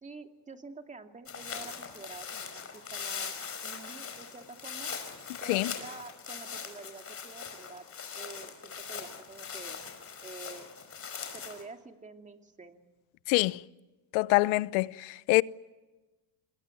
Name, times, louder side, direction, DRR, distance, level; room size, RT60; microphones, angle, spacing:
voice 1, 0.0-3.3 3.6-4.9 5.4-7.9 8.1-9.8 10.2-10.7 11.3-12.8, right 3 dB, 15° right, 2.5 m, -48 dB
sound 1, 1.3-11.6, left 6 dB, 30° left, 4.9 m, -41 dB
voice 2, 13.3-13.6 14.1-15.4, left 22 dB, 85° left, 0.8 m, -25 dB
27.5 x 21.5 x 9.8 m
cardioid pair, 130°, 45 cm